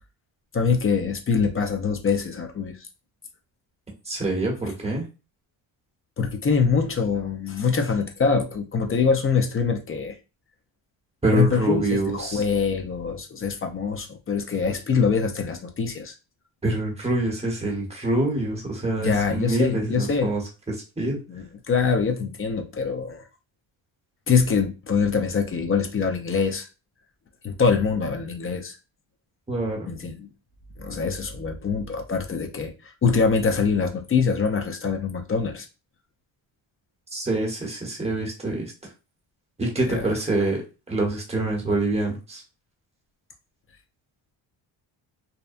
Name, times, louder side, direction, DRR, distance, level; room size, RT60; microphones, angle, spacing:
voice 1, 0.5-2.8 6.2-10.1 11.3-16.1 19.0-20.3 21.3-23.2 24.3-26.7 27.4-28.8 29.9-30.3 30.8-35.7 39.9-40.1, left 5 dB, 30° left, 4 dB, 0.4 m, -24 dB
voice 2, 4.0-5.0 11.2-12.4 16.6-20.4 20.7-21.2 29.5-29.9 37.1-38.7 39.6-42.4, right 2 dB, 15° right, -1 dB, 1.0 m, -26 dB
2.7 x 2.1 x 2.4 m, 0.31 s
cardioid pair, 95°, 48 cm